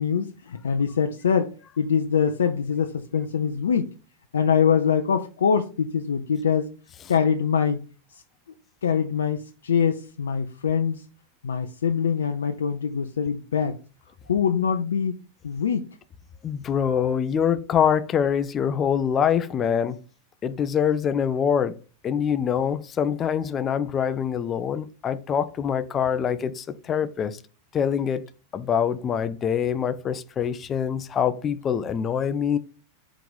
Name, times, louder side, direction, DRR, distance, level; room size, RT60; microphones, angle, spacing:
voice 1, 0.0-3.9 4.3-6.7 7.1-7.8 8.1-8.2 8.8-11.0 11.4-13.8 14.3-15.9, left 7 dB, 75° left, 0.5 m, -24 dB
voice 2, 16.4-20.0 20.4-21.8 22.0-27.4 27.7-28.2 28.5-32.6, left 8 dB, 30° left, 0.5 m, -24 dB
4.7 x 3.8 x 5.3 m
figure-of-eight pair, 90°, 0 cm